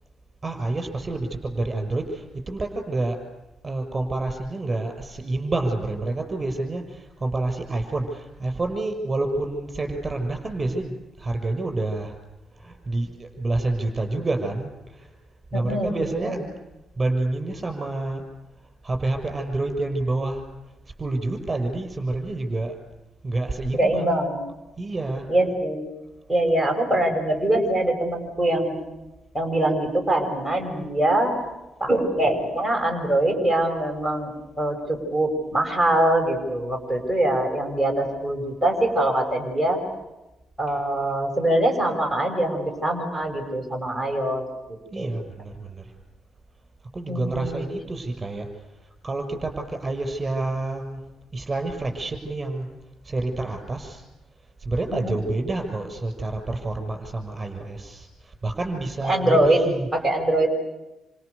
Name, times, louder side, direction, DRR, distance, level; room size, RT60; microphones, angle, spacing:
voice 1, 0.4-3.2 3.6-12.2 12.5-15.1 15.5-16.4 17.0-18.2 18.8-20.5 21.0-22.7 23.2-24.2 24.8-25.3 39.6-39.7 40.7-40.8 44.9-45.9 46.9-48.5 49.0-51.0 51.3-52.7 53.0-54.0 54.6-59.9, right 2 dB, 20° right, 5 dB, 6.5 m, -28 dB
voice 2, 15.5-16.4 23.7-24.4 25.3-25.9 26.3-28.8 29.3-31.4 31.8-34.3 34.6-39.8 40.6-44.5 45.0-45.1 47.1-47.6 54.9-55.2 59.0-59.6 59.9-60.5, right 1 dB, 5° left, 2 dB, 6.4 m, -23 dB
28.5 x 27.0 x 6.8 m, 0.99 s
cardioid pair, 145°, 0 cm